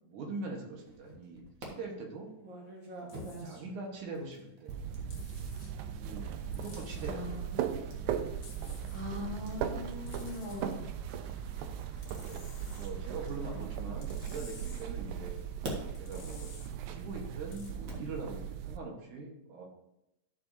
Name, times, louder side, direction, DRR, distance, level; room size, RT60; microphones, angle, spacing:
voice 1, 0.0-2.3 3.0-4.7 6.0-7.4 11.6-11.7 12.2-15.3 16.0-19.6, right 3 dB, 65° right, 0 dB, 2.6 m, -43 dB
sound 1, 0.8-1.7 2.4-14.4 15.1-18.1, right 2 dB, 45° right, 1.7 m, -50 dB
sound 2, 3.1-3.5 5.1-5.7 6.5-7.1 8.4-9.0 10.1-10.6 12.0-12.9 14.0-14.9 15.9-16.7 17.5-17.7, left 5 dB, 50° left, 2.8 m, -54 dB
sound 3, 4.7-18.8, right 8 dB, 90° right, 1.7 m, -38 dB
voice 2, 7.0-7.6 8.9-10.8, left 2 dB, 65° left, -5 dB, 0.3 m, -41 dB
13.0 x 6.9 x 2.7 m, 0.87 s
omnidirectional pair, 4.0 m